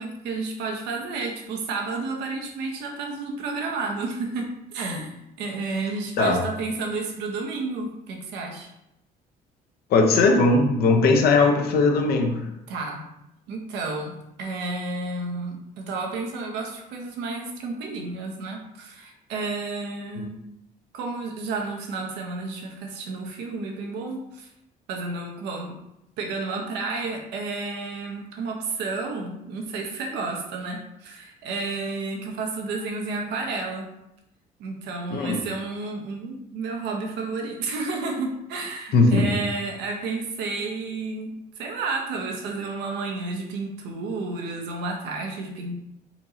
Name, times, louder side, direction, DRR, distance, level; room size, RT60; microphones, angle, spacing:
voice 1, 0.0-8.7 12.7-13.1 13.5-20.4 20.9-24.5 24.9-25.8 26.2-33.9 34.6-45.8, right 3 dB, 85° right, 1 dB, 1.0 m, -31 dB
voice 2, 9.9-12.4 35.1-35.4 38.9-39.2, left 3 dB, 65° left, 3 dB, 0.9 m, -19 dB
4.3 x 2.7 x 4.3 m, 0.84 s
cardioid pair, 110°, 17 cm